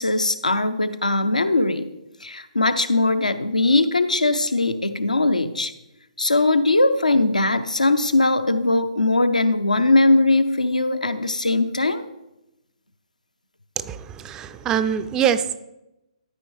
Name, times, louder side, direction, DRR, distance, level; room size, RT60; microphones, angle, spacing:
voice 1, 0.0-1.9 2.2-5.7 6.2-12.0, left 2 dB, 90° left, 10 dB, 0.6 m, -20 dB
voice 2, 13.8-15.6, right 8 dB, 15° right, 12 dB, 0.3 m, -24 dB
13.0 x 5.3 x 3.2 m, 0.94 s
figure-of-eight pair, 135°, 4 cm